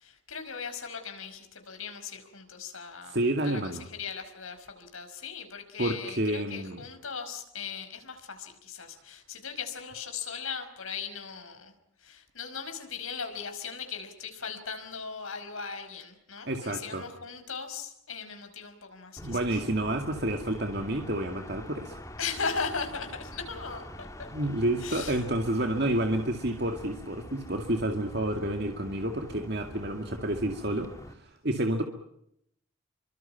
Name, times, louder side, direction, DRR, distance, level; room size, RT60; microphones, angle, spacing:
voice 1, 0.0-11.7 12.0-19.6 22.2-24.1 24.8-25.3, left 5 dB, 85° left, 6 dB, 5.3 m, -38 dB
voice 2, 3.1-3.8 5.8-6.8 16.5-17.1 19.2-22.0 24.3-31.8, right 1 dB, 50° right, 5 dB, 2.2 m, -29 dB
sound 1, 19.2-31.1, equal, 15° left, 2.2 m, -44 dB
30.0 x 24.5 x 5.8 m, 0.75 s
head